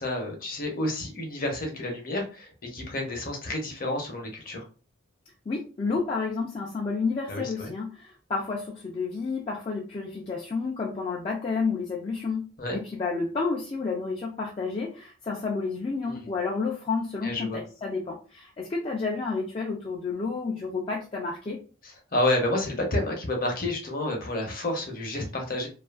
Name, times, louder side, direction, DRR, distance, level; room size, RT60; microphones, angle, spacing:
voice 1, 0.0-4.7 7.3-7.7 12.6-12.8 16.0-16.1 17.2-17.6 21.8-25.7, left 1 dB, 45° left, 2 dB, 0.7 m, -30 dB
voice 2, 5.5-21.6, left 4 dB, 30° left, -3 dB, 0.3 m, -30 dB
2.7 x 2.4 x 2.3 m, 0.36 s
head